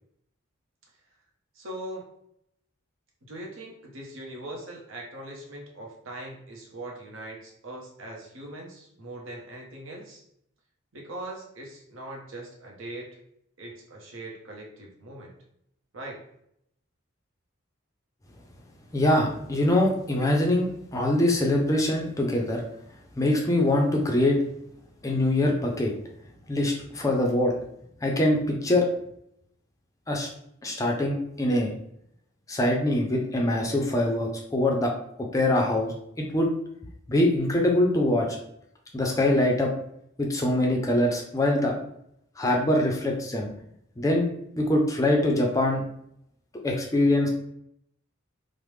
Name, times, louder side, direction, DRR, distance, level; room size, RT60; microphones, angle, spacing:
voice 1, 1.5-2.0 3.2-10.2 10.9-13.2 13.6-15.3 15.9-16.2, right 1 dB, 75° right, -1 dB, 0.8 m, -41 dB
voice 2, 18.9-20.7 20.9-22.6 23.2-24.4 25.0-25.9 26.5-27.6 28.0-28.9 30.1-30.3 30.6-31.7 32.5-34.9 35.3-36.5 37.1-38.4 38.9-39.7 40.2-41.8 42.4-43.5 44.0-44.3 44.6-45.8 46.6-47.3, left 1 dB, 15° left, 0 dB, 0.4 m, -23 dB
3.2 x 2.0 x 3.1 m, 0.74 s
head